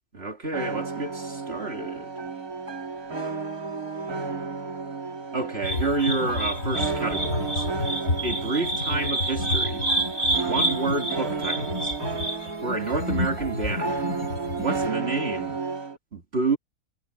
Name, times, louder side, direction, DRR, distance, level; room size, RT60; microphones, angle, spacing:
voice 1, 0.1-2.1 5.3-7.7 8.2-9.9 10.4-11.9 12.6-14.0 14.6-15.6 16.1-16.6, right 3 dB, 45° right, 2.4 m, -29 dB
sound 1, 0.5-16.0, right 4 dB, 90° right, 3.5 m, -32 dB
sound 2, 5.6-14.9, equal, 65° left, 4.9 m, -28 dB
omnidirectional pair, 1.5 m